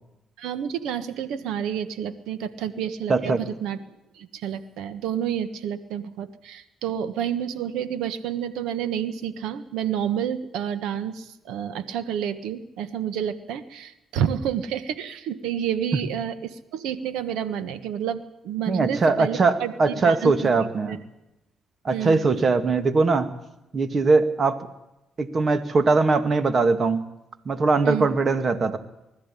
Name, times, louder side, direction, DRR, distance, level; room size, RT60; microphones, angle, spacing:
voice 1, 0.4-3.8 4.1-20.3 20.8-21.0 21.9-22.2 27.8-28.1, right 9 dB, 90° right, 12 dB, 1.4 m, -29 dB
voice 2, 3.1-3.4 18.7-21.0 21.8-23.3 23.7-24.7 25.2-27.0 27.5-28.8, right 3 dB, 40° right, 10 dB, 2.2 m, -21 dB
21.0 x 14.0 x 10.0 m, 0.88 s
cardioid pair, 90°, 0 cm